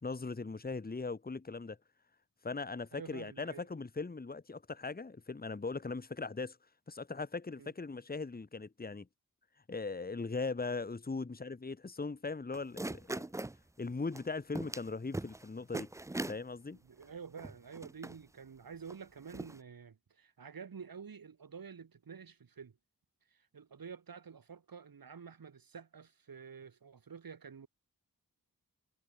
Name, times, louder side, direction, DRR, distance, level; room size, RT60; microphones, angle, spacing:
voice 1, 0.0-1.8 2.4-6.6 6.9-9.1 9.7-13.3 13.8-15.9 16.3-16.8, left 4 dB, 25° left, 1.1 m, -39 dB
voice 2, 2.9-3.7 7.6-7.7 16.8-22.8 23.3-27.7, right 6 dB, 80° right, 2.0 m, -49 dB
sound 1, 12.5-13.6 14.1-14.2 14.5-14.9 15.1-15.4 15.7-16.4 17.0-17.1 17.4-18.2 18.9-19.0 19.3-19.6, right 2 dB, 10° right, 0.4 m, -40 dB
wide cardioid pair, 65°, 35 cm